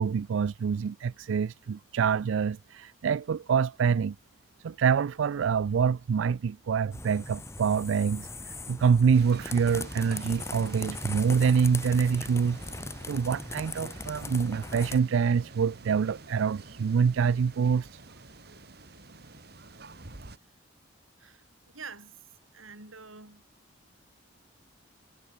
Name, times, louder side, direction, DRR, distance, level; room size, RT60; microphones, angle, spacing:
voice 1, 0.0-4.2 4.6-12.6 13.1-17.9, right 6 dB, 75° right, 0.4 m, -26 dB
sound 1, 6.9-15.0, left 2 dB, 15° left, 2.0 m, -39 dB
sound 2, 9.1-20.4, right 3 dB, 50° right, 1.8 m, -48 dB
voice 2, 21.7-22.2 22.5-23.5, right 5 dB, 90° right, 7.2 m, -46 dB
head